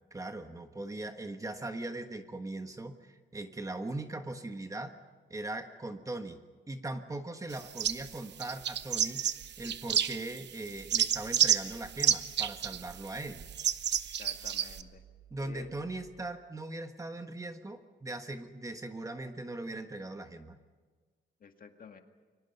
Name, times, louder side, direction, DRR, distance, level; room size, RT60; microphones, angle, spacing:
voice 1, 0.1-4.9 5.3-6.4 6.7-9.2 9.6-13.4 15.3-20.6, right 2 dB, 20° right, 7 dB, 1.4 m, -40 dB
sound 1, 7.5-8.1 8.4-10.4 10.7-14.8, right 9 dB, 75° right, 0.9 m, -30 dB
sound 2, 10.7-16.1, right 11 dB, 40° right, 7.3 m, -57 dB
voice 2, 14.0-15.0 15.4-15.7 21.4-22.0, left 6 dB, 50° left, 5 dB, 2.0 m, -50 dB
29.5 x 23.5 x 5.5 m, 1.4 s
wide cardioid pair, 130°, 18 cm